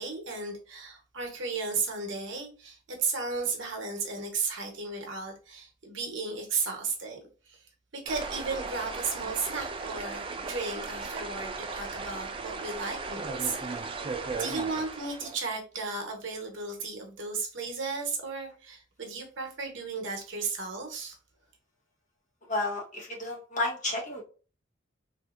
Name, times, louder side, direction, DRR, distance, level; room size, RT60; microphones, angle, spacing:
voice 1, 0.0-7.2 7.5-7.6 7.9-14.0 14.4-21.2, right 4 dB, 65° right, 2 dB, 0.9 m, -34 dB
sound 1, 8.1-15.4, right 4 dB, 25° right, 0.3 m, -36 dB
voice 2, 22.5-24.2, left 2 dB, 40° left, -2 dB, 1.0 m, -31 dB
3.3 x 2.6 x 2.4 m, 0.37 s
head